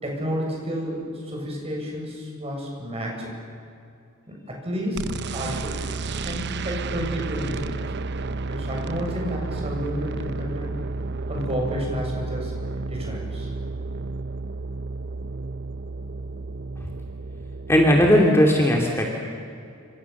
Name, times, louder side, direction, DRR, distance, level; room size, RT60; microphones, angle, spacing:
voice 1, 0.0-3.3 4.3-7.9 8.5-10.7 11.3-12.5 12.9-13.5, equal, 30° right, -1 dB, 7.9 m, -31 dB
sound 1, 5.0-18.3, right 3 dB, 55° right, 0.8 m, -32 dB
voice 2, 17.7-19.1, equal, 10° left, 0 dB, 2.7 m, -17 dB
28.5 x 27.0 x 7.2 m, 2.5 s
head